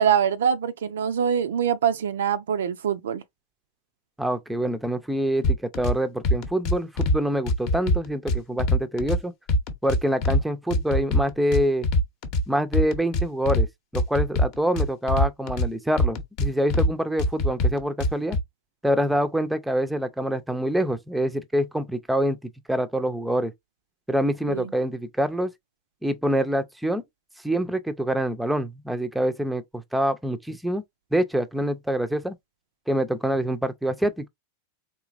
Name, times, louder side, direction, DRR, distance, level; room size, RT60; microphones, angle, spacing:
voice 1, 0.0-3.2 24.5-24.7, right 8 dB, 60° right, 0.4 m, -24 dB
voice 2, 4.2-9.3 9.8-11.9 12.5-13.7 13.9-18.4 18.8-22.4 22.7-23.5 24.1-25.5 26.0-27.0 27.4-30.8 31.1-32.3 32.9-34.3, right 1 dB, 5° right, 0.5 m, -25 dB
sound 1, 5.4-5.9 6.2-7.2 7.5-9.2 9.5-10.4 10.7-12.4 12.7-13.7 13.9-15.7 16.0-16.9 17.2-18.4, left 1 dB, 45° left, 0.8 m, -22 dB
3.8 x 2.8 x 2.4 m
figure-of-eight pair, 90°, 0 cm